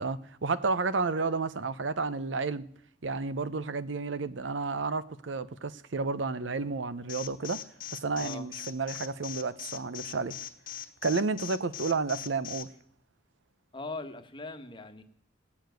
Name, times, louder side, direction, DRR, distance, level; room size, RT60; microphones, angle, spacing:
voice 1, 0.0-2.6 3.0-7.6 7.9-10.4 11.0-12.7, right 4 dB, 75° right, 0.7 m, -31 dB
Alarm, 7.1-12.6, left 12 dB, 45° left, 1.2 m, -40 dB
voice 2, 13.7-15.0, left 3 dB, 25° left, 1.2 m, -40 dB
17.0 x 7.2 x 9.1 m
head